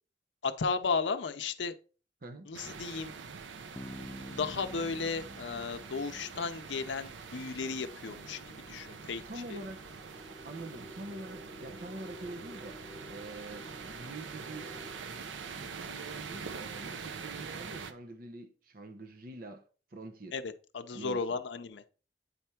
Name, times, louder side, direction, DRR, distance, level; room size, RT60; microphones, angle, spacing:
voice 1, 0.4-1.7 2.5-3.1 4.3-9.2 9.5-9.6 20.3-21.8, left 4 dB, 75° left, 0.6 m, -34 dB
voice 2, 2.2-2.5 9.3-9.8 10.4-14.8 15.6-20.4 20.9-21.4, right 2 dB, 50° right, 0.7 m, -45 dB
sound 1, 2.5-17.9, right 5 dB, 85° right, 0.6 m, -45 dB
Bass guitar, 3.7-7.5, left 1 dB, 10° left, 0.3 m, -48 dB
sound 2, 6.6-16.1, equal, 15° right, 1.3 m, -53 dB
8.5 x 3.4 x 4.4 m
head